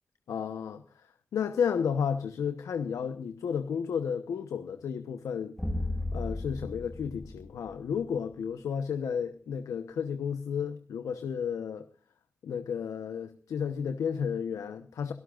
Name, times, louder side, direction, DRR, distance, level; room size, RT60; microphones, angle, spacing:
voice 1, 0.3-5.5 6.1-11.9 12.4-15.1, left 7 dB, 80° left, 0.9 m, -32 dB
sound 1, 5.6-8.2, left 1 dB, 10° left, 1.6 m, -35 dB
23.5 x 13.0 x 2.5 m
cardioid pair, 65°, 5 cm